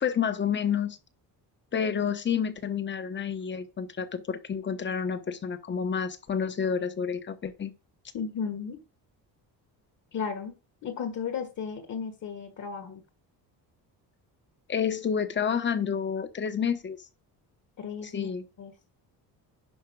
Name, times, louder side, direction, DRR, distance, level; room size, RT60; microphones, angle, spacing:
voice 1, 0.0-1.0 1.7-7.7 14.7-17.0 18.0-18.4, left 7 dB, 30° left, 1.0 m, -29 dB
voice 2, 8.1-8.8 10.1-10.5 10.8-13.0 17.8-18.3 18.6-18.7, left 6 dB, 45° left, 1.5 m, -34 dB
11.0 x 4.4 x 6.2 m
cardioid pair, 155°, 40 cm